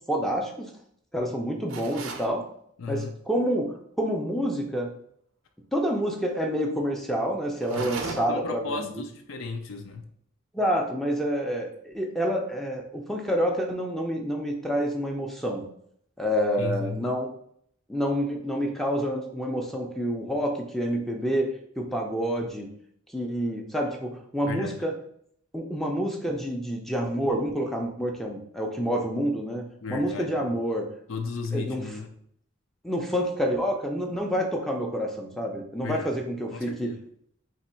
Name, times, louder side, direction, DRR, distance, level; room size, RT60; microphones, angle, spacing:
voice 1, 0.1-0.7 1.1-2.4 2.9-4.9 5.7-8.9 10.5-15.7 16.2-17.3 17.9-22.7 23.1-24.9 25.5-30.8 31.5-31.8 32.8-36.9, equal, ahead, 0.5 m, -28 dB
sound 1, 1.7-2.3 7.6-8.5, right 4 dB, 90° right, 0.6 m, -36 dB
voice 2, 2.8-3.1 7.7-10.1 16.6-17.0 24.5-24.8 29.8-30.5 31.1-32.1 35.8-36.2 36.5-37.0, left 4 dB, 85° left, 0.5 m, -34 dB
3.5 x 3.0 x 4.3 m
head